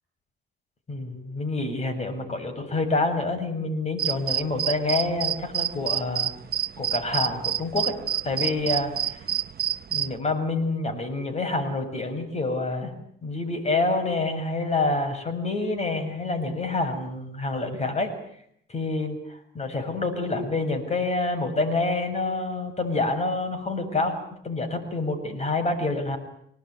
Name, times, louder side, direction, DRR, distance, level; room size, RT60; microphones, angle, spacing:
voice 1, 0.9-6.3 6.8-7.9 8.2-9.2 9.9-12.9 13.2-18.1 18.7-19.2 19.5-26.2, left 2 dB, 35° left, 6 dB, 7.6 m, -27 dB
sound 1, 4.0-10.1, right 10 dB, 50° right, 1.0 m, -28 dB
26.5 x 20.0 x 9.8 m, 0.71 s
cardioid pair, 90°, 20 cm